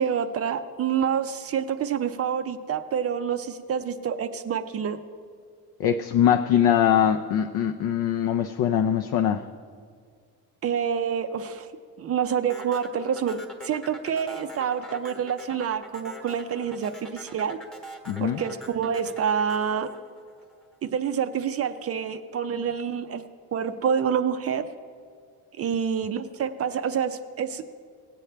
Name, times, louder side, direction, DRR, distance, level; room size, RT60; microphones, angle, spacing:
voice 1, 0.0-5.0 10.6-11.7 12.0-17.6 18.2-19.9 20.8-23.2 23.5-24.6 25.6-27.7, right 7 dB, 35° right, 9 dB, 0.4 m, -27 dB
voice 2, 5.8-9.4 18.1-18.4, left 9 dB, 65° left, 6 dB, 0.5 m, -22 dB
sound 1, 12.5-20.9, right 1 dB, ahead, 1.0 m, -43 dB
19.5 x 8.5 x 3.3 m, 2.1 s
cardioid pair, 175°, 41 cm